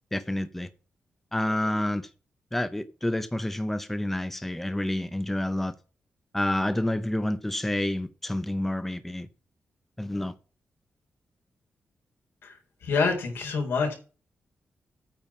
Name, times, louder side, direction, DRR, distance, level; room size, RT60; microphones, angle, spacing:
voice 1, 0.1-0.7 1.3-2.1 2.5-5.7 6.3-9.3 10.0-10.3, left 1 dB, 5° left, 0.6 m, -29 dB
voice 2, 12.8-13.9, left 4 dB, 85° left, 4.1 m, -26 dB
9.0 x 5.4 x 7.2 m
wide cardioid pair, 170°, 4 cm